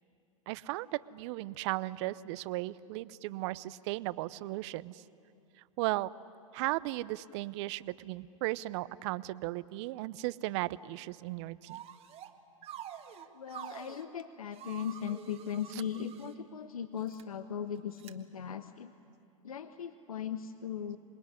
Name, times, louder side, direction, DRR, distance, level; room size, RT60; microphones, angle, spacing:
voice 1, 0.5-5.0 5.8-6.1 6.5-11.8 15.7-15.8, right 18 dB, 55° right, 18 dB, 0.7 m, -36 dB
sound 1, 11.7-12.3 12.6-14.0 14.5-16.4 17.0-17.2 18.0-18.1, right 10 dB, 35° right, 1.6 m, -47 dB
voice 2, 13.3-18.9 19.4-21.0, left 8 dB, 85° left, 11 dB, 0.9 m, -38 dB
26.5 x 21.0 x 9.8 m, 2.5 s
hypercardioid pair, 105°, 18 cm